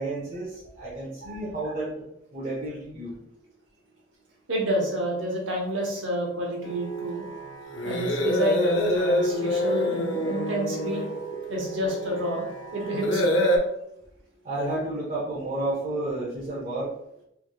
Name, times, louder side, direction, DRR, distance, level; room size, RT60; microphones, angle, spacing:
voice 1, 0.0-2.0 2.3-3.2 14.4-16.9, right 2 dB, 40° right, -7 dB, 0.9 m, -31 dB
voice 2, 4.5-7.2 7.8-11.0 11.5-13.3, equal, 85° right, -1 dB, 1.0 m, -29 dB
sound 1, 6.6-13.6, equal, 85° left, 0.6 m, -27 dB
sound 2, 9.5-13.1, right 3 dB, 5° right, 1.4 m, -38 dB
3.4 x 3.2 x 2.3 m, 0.80 s
head